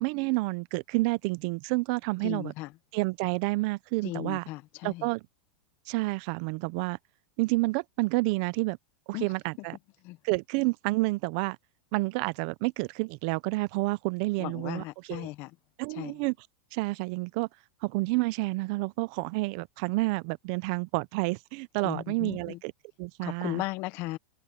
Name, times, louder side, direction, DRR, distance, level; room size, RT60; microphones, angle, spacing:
voice 1, 0.0-2.5 2.9-4.5 4.8-5.2 5.9-7.0 7.4-8.8 9.1-9.8 10.2-11.6 11.9-15.3 15.8-16.3 16.7-17.5 17.8-22.7 23.0-23.6, right 24 dB, 35° right, 0.4 m, -29 dB
voice 2, 2.2-2.7 4.0-5.1 9.1-9.3 10.0-10.2 14.4-15.5 15.9-16.1 21.8-22.6 23.2-24.2, left 19 dB, 30° left, 0.6 m, -36 dB
supercardioid pair, 180°, 7 cm